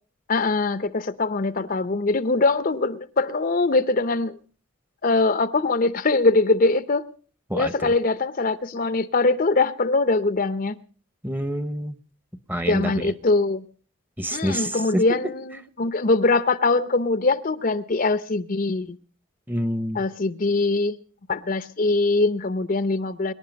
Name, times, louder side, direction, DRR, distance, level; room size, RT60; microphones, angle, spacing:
voice 1, 0.3-4.4 5.0-7.1 7.5-10.8 12.7-13.6 14.3-19.0 19.9-21.0 21.3-23.3, left 3 dB, 45° left, 0.7 m, -22 dB
voice 2, 7.5-7.9 11.2-11.9 12.5-12.9 14.2-15.2 19.5-20.0, equal, 10° right, 0.9 m, -27 dB
24.5 x 11.0 x 5.2 m
head